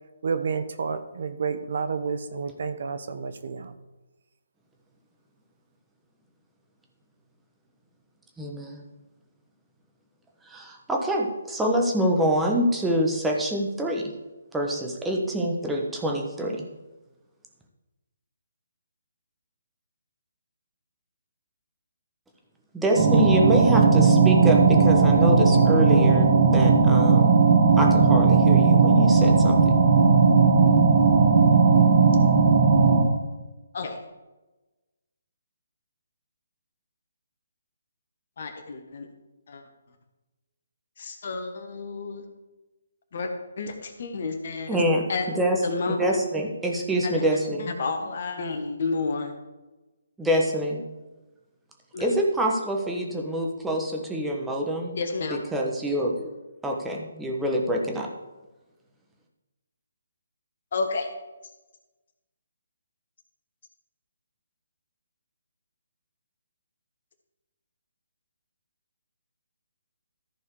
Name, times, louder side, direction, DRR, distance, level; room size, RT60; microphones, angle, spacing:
voice 1, 0.2-3.7, right 5 dB, 60° right, 10 dB, 0.8 m, -30 dB
voice 2, 8.4-8.8 10.5-14.1 14.5-16.7 22.7-27.3 27.8-29.8 44.7-47.7 50.2-50.8 52.0-55.0 55.3-56.3 56.6-58.1, equal, 5° right, 0 dB, 1.2 m, -26 dB
sound 1, 22.9-33.0, right 5 dB, 35° right, 1.9 m, -17 dB
voice 3, 38.4-39.1 39.5-39.6 41.0-42.2 43.1-43.3 43.6-44.7 45.1-45.2 45.6-46.0 47.0-47.2 47.8-49.3 51.9-52.1 55.0-55.4 60.7-61.1, left 4 dB, 55° left, 5 dB, 1.5 m, -30 dB
14.0 x 4.6 x 4.9 m, 1.1 s
figure-of-eight pair, 150°, 0 cm